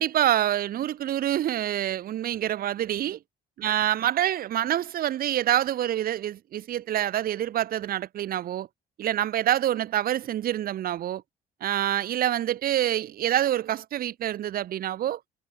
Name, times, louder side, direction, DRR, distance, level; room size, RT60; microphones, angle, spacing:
voice 1, 0.0-3.2 3.6-8.7 9.0-11.2 11.6-15.2, right 12 dB, 60° right, 2.1 m, -26 dB
cardioid pair, 110°, 17 cm